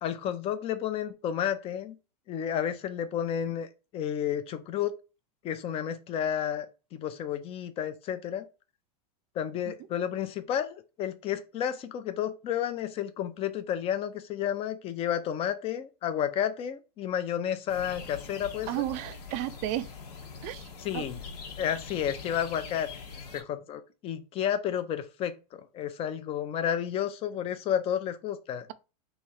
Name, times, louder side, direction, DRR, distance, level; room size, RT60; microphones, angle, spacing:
voice 1, 0.0-1.9 2.3-3.7 3.9-4.9 5.4-6.7 6.9-8.4 9.4-18.7 20.8-21.2 21.6-22.9 23.3-28.7, left 9 dB, 30° left, 0.6 m, -31 dB
sound 1, 17.7-23.4, left 5 dB, 75° left, 1.2 m, -43 dB
voice 2, 18.7-19.9 20.4-20.7 20.9-21.0, right 14 dB, 35° right, 0.4 m, -32 dB
3.2 x 2.7 x 4.6 m
supercardioid pair, 135°, 20 cm